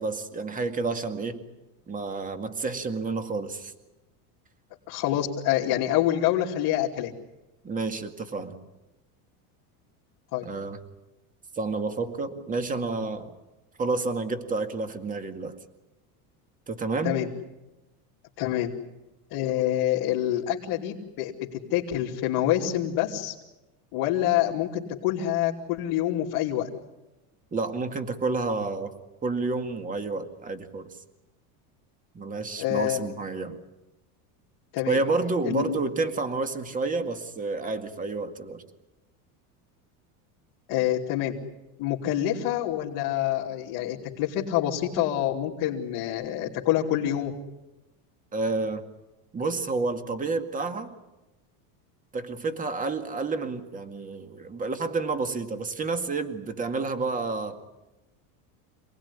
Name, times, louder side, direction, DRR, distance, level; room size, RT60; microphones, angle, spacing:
voice 1, 0.0-1.4 1.9-3.7 7.6-8.6 10.4-10.8 11.5-13.3 13.8-15.6 16.7-17.2 27.5-28.9 29.2-30.9 32.1-33.6 34.9-38.6 48.3-48.9 49.3-50.9 52.1-57.6, right 3 dB, 20° right, 9 dB, 2.1 m, -30 dB
voice 2, 4.9-7.1 10.3-10.5 17.0-17.3 18.4-18.7 19.3-23.3 23.9-26.7 32.6-33.1 34.7-35.0 35.4-35.8 40.7-41.4 41.8-47.3, left 12 dB, 50° left, -3 dB, 3.0 m, -26 dB
28.0 x 19.5 x 10.0 m, 1.0 s
cardioid pair, 155°, 44 cm